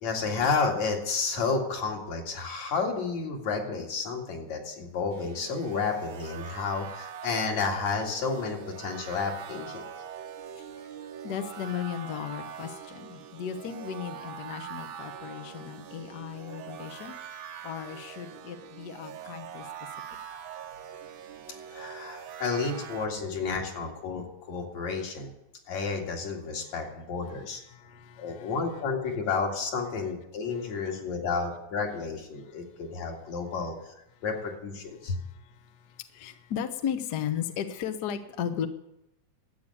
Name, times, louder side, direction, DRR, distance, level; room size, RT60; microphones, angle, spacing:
voice 1, 0.0-9.9 21.7-25.3 25.7-27.6 28.2-33.8 34.2-35.1, left 4 dB, 65° left, 1 dB, 3.5 m, -31 dB
sound 1, 5.1-23.1, right 8 dB, 75° right, 1.1 m, -43 dB
voice 2, 11.2-17.1 17.6-19.7 27.3-27.4 27.7-28.5 35.0-38.7, left 8 dB, 90° left, 8 dB, 0.8 m, -36 dB
12.5 x 8.3 x 9.8 m, 0.84 s
omnidirectional pair, 3.4 m